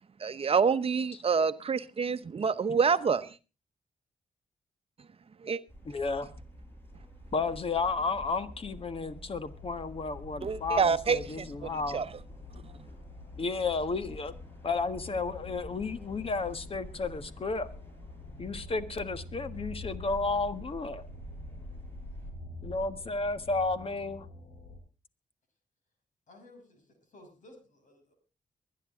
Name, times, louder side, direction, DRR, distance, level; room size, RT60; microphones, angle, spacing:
voice 1, 0.2-3.4 5.4-5.6 10.4-12.1, right 5 dB, 45° right, 0.8 m, -27 dB
sound 1, 5.7-22.3, equal, 15° left, 5.9 m, -49 dB
voice 2, 5.8-6.3 7.3-12.0 13.4-14.3 14.6-17.7 18.4-21.1 22.6-24.3, left 3 dB, 45° left, 1.5 m, -32 dB
sound 2, 7.4-24.8, left 3 dB, 90° left, 3.5 m, -47 dB
voice 3, 26.3-28.1, left 1 dB, 70° left, 7.0 m, -55 dB
23.5 x 10.0 x 3.7 m
cardioid pair, 90°, 13 cm